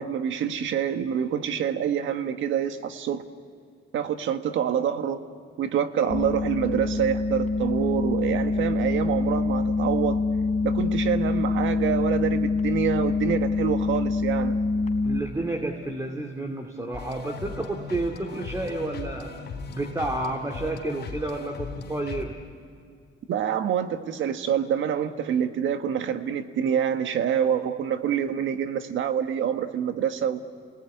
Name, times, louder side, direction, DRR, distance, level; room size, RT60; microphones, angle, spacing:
voice 1, 0.0-3.2 3.9-5.2 5.6-10.2 10.6-14.5 23.3-30.4, right 8 dB, 75° right, 8 dB, 1.5 m, -26 dB
sound 1, 6.1-15.2, left 3 dB, 35° left, 3.5 m, -25 dB
voice 2, 15.0-22.3, right 2 dB, 15° right, 3 dB, 2.4 m, -31 dB
sound 2, 16.9-22.2, left 4 dB, 55° left, 3.9 m, -38 dB
29.5 x 20.0 x 9.6 m, 2.2 s
cardioid pair, 90°, 20 cm